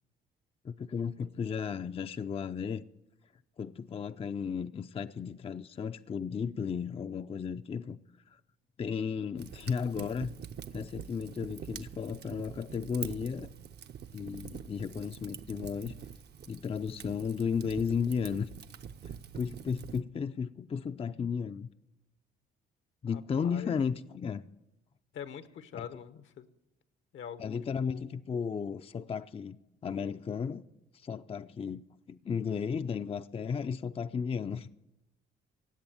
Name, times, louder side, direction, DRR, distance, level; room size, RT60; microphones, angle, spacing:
voice 1, 0.6-2.8 3.6-8.0 8.3-8.4 8.8-10.3 10.7-13.5 14.1-15.9 16.5-18.5 19.3-21.7 23.0-24.4 25.7-25.9 27.4-30.6 30.9-34.7, left 6 dB, 30° left, 0.4 m, -34 dB
Fire, 9.4-20.0, right 8 dB, 55° right, 0.7 m, -45 dB
voice 2, 23.1-23.7 25.1-26.4 27.1-28.1, left 8 dB, 70° left, 1.0 m, -44 dB
17.5 x 7.9 x 9.2 m
cardioid pair, 90°, 20 cm